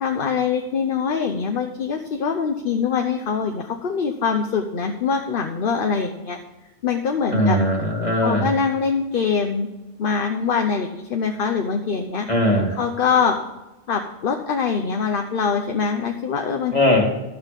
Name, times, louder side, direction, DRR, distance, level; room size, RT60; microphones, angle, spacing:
voice 1, 0.0-6.4 6.8-7.6 8.2-9.7 10.0-12.3 12.7-13.4 13.9-16.7, left 6 dB, 50° left, 4 dB, 0.9 m, -23 dB
voice 2, 7.3-8.5 12.3-12.8 16.7-17.0, left 1 dB, 30° left, 0 dB, 2.4 m, -19 dB
12.0 x 8.1 x 5.3 m, 1.1 s
omnidirectional pair, 1.3 m